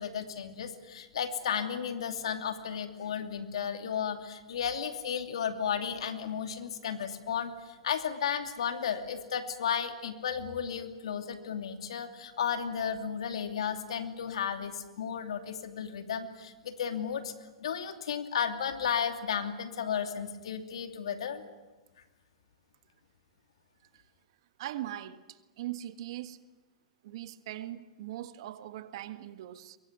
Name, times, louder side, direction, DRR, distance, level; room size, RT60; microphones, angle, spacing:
voice 1, 0.0-17.3 17.6-21.4, left 7 dB, 75° left, 2.7 m, -34 dB
voice 2, 24.6-26.4 27.0-29.8, right 13 dB, 60° right, 1.6 m, -40 dB
23.5 x 23.0 x 9.5 m
hypercardioid pair, 115°, 3 cm